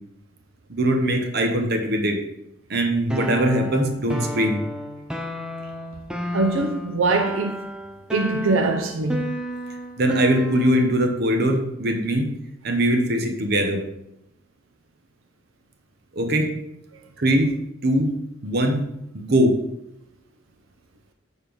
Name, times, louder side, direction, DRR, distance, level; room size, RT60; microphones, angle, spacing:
voice 1, 0.7-2.2 2.7-4.6 10.0-12.3 12.6-13.8 16.1-16.5 17.2-17.5 17.8-18.2 18.4-18.9 19.1-19.6, right 1 dB, 55° right, 1.0 m, -21 dB
sound 1, 3.1-11.0, equal, 5° right, 0.5 m, -31 dB
voice 2, 6.3-7.5 8.1-9.3, right 3 dB, 90° right, 0.6 m, -22 dB
6.9 x 4.3 x 5.2 m
head